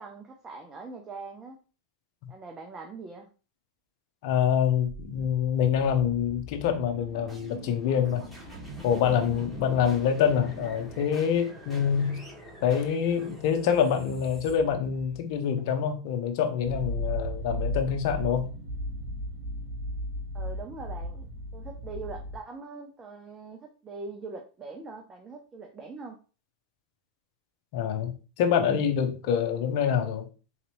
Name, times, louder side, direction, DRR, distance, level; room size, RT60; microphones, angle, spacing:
voice 1, 0.0-1.6 2.3-3.3 20.3-26.2, right 3 dB, 20° right, 2 dB, 0.7 m, -42 dB
voice 2, 4.2-8.2 8.8-12.2 12.6-18.5 27.7-30.3, left 8 dB, 60° left, 6 dB, 0.8 m, -26 dB
sound 1, 4.8-15.6, right 1 dB, ahead, 1.8 m, -44 dB
sound 2, 16.6-22.4, left 1 dB, 75° right, 1.1 m, -34 dB
3.9 x 2.9 x 3.1 m, 0.35 s
hypercardioid pair, 110°, 3 cm